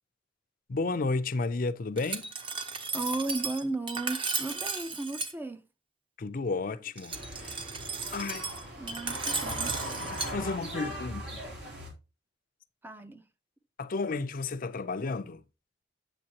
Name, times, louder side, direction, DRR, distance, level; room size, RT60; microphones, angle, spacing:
voice 1, 0.7-2.3 6.2-7.6 8.1-8.5 10.0-11.4 13.8-15.4, left 3 dB, 50° left, 0.5 m, -32 dB
Glass, 2.0-5.3 7.0-10.3, right 4 dB, 30° right, 0.9 m, -35 dB
voice 2, 2.9-5.6 8.8-9.8 12.8-13.2, right 2 dB, 10° right, 0.5 m, -35 dB
sound 1, 7.1-11.9, equal, 80° right, 3.6 m, -39 dB
8.7 x 7.0 x 2.9 m
head